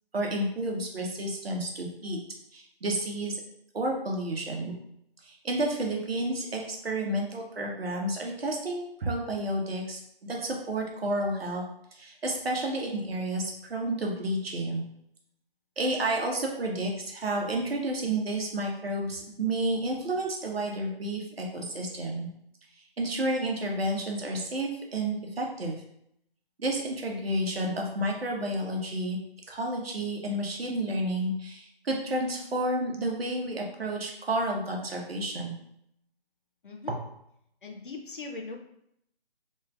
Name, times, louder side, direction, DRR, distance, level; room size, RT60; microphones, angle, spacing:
voice 1, 0.1-2.2 2.5-3.4 3.7-4.7 5.2-11.6 11.9-14.8 15.8-22.3 23.0-25.8 26.6-29.2 29.5-35.5 36.9-37.0, right 1 dB, 70° right, 0 dB, 0.9 m, -31 dB
voice 2, 36.6-37.0 37.6-38.6, left 3 dB, 55° left, 2 dB, 0.6 m, -40 dB
3.3 x 3.1 x 2.3 m, 0.74 s
figure-of-eight pair, 155°, 31 cm